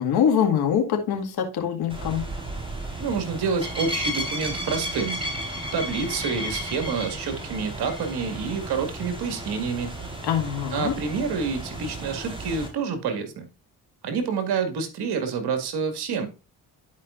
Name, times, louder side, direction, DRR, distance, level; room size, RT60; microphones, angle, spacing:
voice 1, 0.0-2.2 10.2-10.9, left 8 dB, 65° left, 3 dB, 2.1 m, -23 dB
sound 1, 1.9-12.7, right 1 dB, 10° right, 4.3 m, -33 dB
voice 2, 3.0-5.2 5.7-9.9 10.7-13.5 14.0-16.3, right 5 dB, 65° right, 6 dB, 2.2 m, -28 dB
11.5 x 5.3 x 2.6 m, 0.31 s
supercardioid pair, 55°, 41 cm